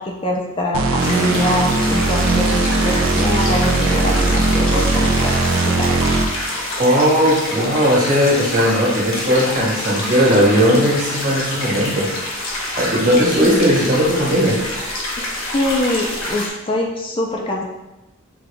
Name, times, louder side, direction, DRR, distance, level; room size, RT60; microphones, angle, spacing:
voice 1, 0.0-5.9 15.2-15.3 15.5-17.6, left 1 dB, 25° left, 0 dB, 0.4 m, -23 dB
sound 1, 0.7-6.5, right 3 dB, 90° right, 0.5 m, -19 dB
sound 2, 1.0-16.5, left 1 dB, 65° left, 1.1 m, -27 dB
voice 2, 6.8-12.1 12.7-14.6, equal, 40° right, -6 dB, 1.5 m, -17 dB
5.9 x 2.4 x 3.4 m, 0.99 s
head